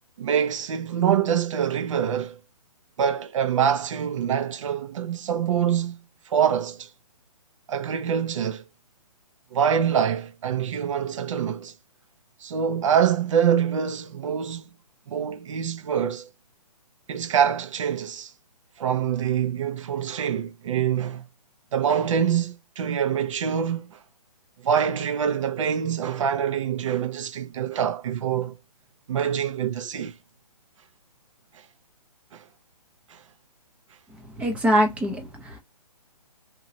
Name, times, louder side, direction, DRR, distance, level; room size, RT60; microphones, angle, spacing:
voice 1, 0.2-2.4 3.0-6.0 6.3-6.9 7.7-8.6 9.5-11.7 12.4-14.7 15.1-16.3 17.1-18.3 18.8-21.2 21.7-23.9 24.6-28.5 29.1-30.1 32.3-32.4 33.1-33.2, right 8 dB, 50° right, 1.0 m, -25 dB
voice 2, 34.4-35.6, equal, 5° right, 0.7 m, -23 dB
2.9 x 2.8 x 2.8 m
hypercardioid pair, 150°, 20 cm